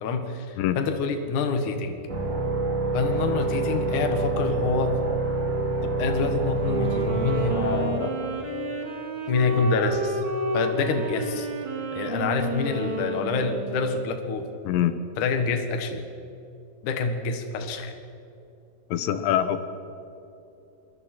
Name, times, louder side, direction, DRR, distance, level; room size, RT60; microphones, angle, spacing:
voice 1, 0.0-2.0 2.9-5.0 5.8-8.2 9.3-10.2 10.5-11.5 11.9-14.5 15.2-16.0 16.8-17.9, left 4 dB, 55° left, 6 dB, 2.6 m, -27 dB
sound 1, 2.1-7.9, right 3 dB, 20° right, 3.1 m, -26 dB
Wind instrument woodwind instrument, 6.5-14.2, right 2 dB, 35° right, 2.4 m, -31 dB
voice 2, 14.7-15.0 18.9-19.6, left 11 dB, 90° left, 11 dB, 3.2 m, -24 dB
25.5 x 23.5 x 4.5 m, 2.8 s
omnidirectional pair, 5.0 m